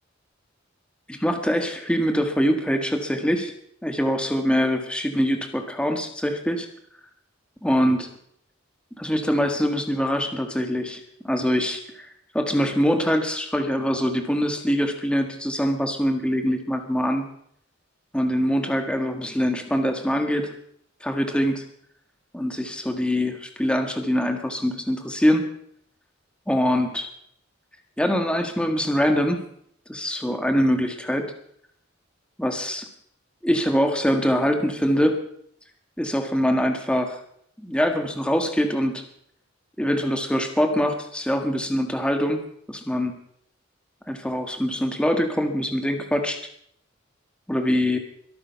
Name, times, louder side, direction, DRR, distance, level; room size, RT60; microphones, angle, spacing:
voice 1, 1.1-3.5 3.8-6.7 7.6-8.1 9.0-12.1 12.3-17.2 18.1-20.5 21.0-21.6 22.3-25.5 26.5-27.1 28.0-29.4 29.9-31.3 32.4-32.8 33.4-35.2 36.0-37.2 37.6-39.0 39.8-42.4 42.7-43.2 44.1-46.4 47.5-48.0, equal, 5° left, 5 dB, 1.6 m, -23 dB
22.5 x 8.9 x 5.8 m, 0.68 s
head